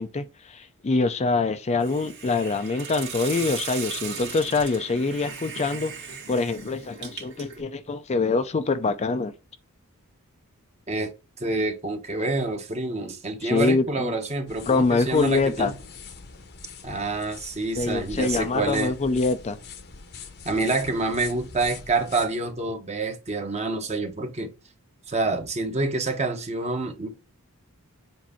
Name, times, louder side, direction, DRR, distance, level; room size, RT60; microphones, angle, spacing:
voice 1, 0.0-5.9 6.3-9.3 13.4-14.1 14.7-15.7 17.8-19.6, left 3 dB, 30° left, 0.4 m, -25 dB
Hiss, 1.8-7.6, right 6 dB, 50° right, 2.1 m, -37 dB
voice 2, 11.4-15.7 16.8-18.9 20.4-24.5 25.1-27.1, right 3 dB, 30° right, 1.0 m, -27 dB
sound 1, 14.5-22.3, left 5 dB, 50° left, 0.8 m, -42 dB
7.4 x 2.6 x 5.5 m
head